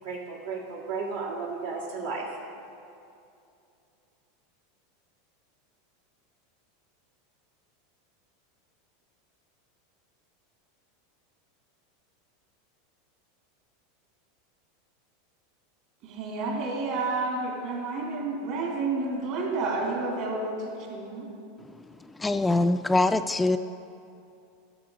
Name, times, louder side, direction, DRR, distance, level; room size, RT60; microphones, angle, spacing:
voice 1, 0.0-2.4, right 4 dB, 85° right, -3 dB, 1.8 m, -34 dB
voice 2, 16.0-21.3, right 3 dB, 60° right, -1 dB, 2.8 m, -30 dB
voice 3, 22.0-23.6, left 2 dB, 10° left, 10 dB, 0.3 m, -24 dB
13.0 x 6.6 x 5.0 m, 2.6 s
hypercardioid pair, 100°, 0 cm